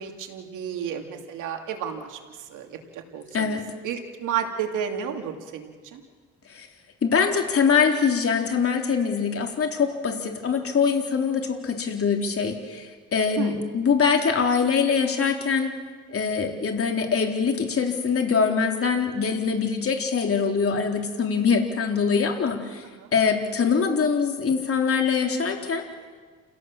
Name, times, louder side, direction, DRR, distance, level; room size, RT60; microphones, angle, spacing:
voice 1, 0.0-2.2 2.5-3.6 3.8-6.0 13.4-13.6 23.0-23.1, right 8 dB, 85° right, 3 dB, 2.7 m, -32 dB
voice 2, 3.3-3.7 6.5-6.7 7.0-15.7 16.1-22.8 23.1-25.8, left 6 dB, 50° left, 2 dB, 3.8 m, -23 dB
29.0 x 17.0 x 7.4 m, 1.5 s
cardioid pair, 90°, 30 cm